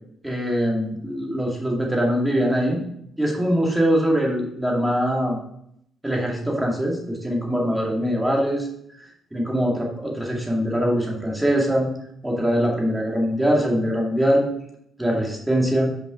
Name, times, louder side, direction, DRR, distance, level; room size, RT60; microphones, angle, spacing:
voice 1, 0.2-2.8 3.2-5.4 6.0-8.7 9.3-11.9 12.2-14.5 15.0-15.9, equal, 10° right, -1 dB, 2.1 m, -22 dB
6.0 x 5.1 x 4.9 m, 0.72 s
cardioid pair, 90°, 0 cm